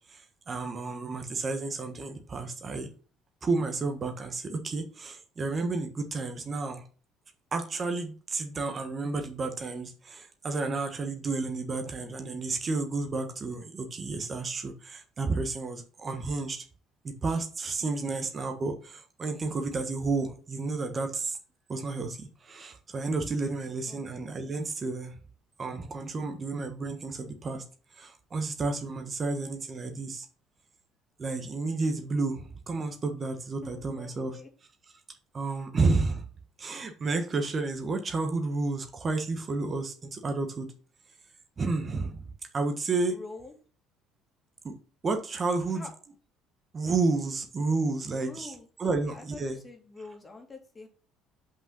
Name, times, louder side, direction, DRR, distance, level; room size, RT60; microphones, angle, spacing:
voice 1, 0.1-2.9 3.4-6.8 7.5-16.6 17.0-21.4 21.7-25.2 25.6-27.6 27.9-30.3 31.2-34.4 35.3-36.3 36.6-40.7 41.6-42.2 42.5-43.2 44.6-44.7 45.0-45.9 46.7-48.5 48.8-49.6, right 3 dB, 35° right, 1.4 m, -31 dB
voice 2, 17.8-18.3 23.9-24.0 33.6-34.5 35.5-35.6 43.1-43.5 45.7-45.9 48.2-50.9, left 3 dB, 25° left, 2.4 m, -46 dB
5.7 x 5.5 x 5.5 m
hypercardioid pair, 60°, 0 cm